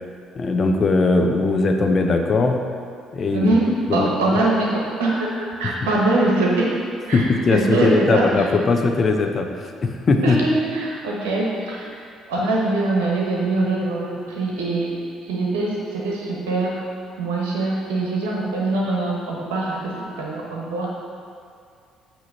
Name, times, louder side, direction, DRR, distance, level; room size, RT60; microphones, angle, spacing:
voice 1, 0.4-2.6 3.1-3.5 3.9-4.4 7.1-9.5 9.8-10.4, left 3 dB, 40° left, 4 dB, 0.7 m, -19 dB
voice 2, 3.3-6.8 7.1-8.5 10.2-11.9 12.3-14.9 15.2-16.8 17.2-20.9, right 2 dB, 65° right, -3 dB, 1.1 m, -23 dB
8.2 x 3.0 x 6.3 m, 2.3 s
figure-of-eight pair, 50°, 0 cm